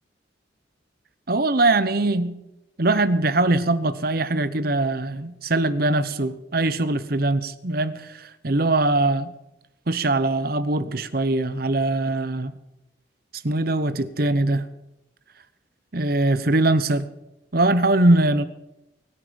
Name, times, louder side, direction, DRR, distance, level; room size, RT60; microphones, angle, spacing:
voice 1, 1.3-2.4 2.8-9.3 9.9-12.5 13.4-14.7 15.9-17.1 17.5-18.4, right 2 dB, 50° right, 1.0 m, -22 dB
23.5 x 10.5 x 5.2 m
head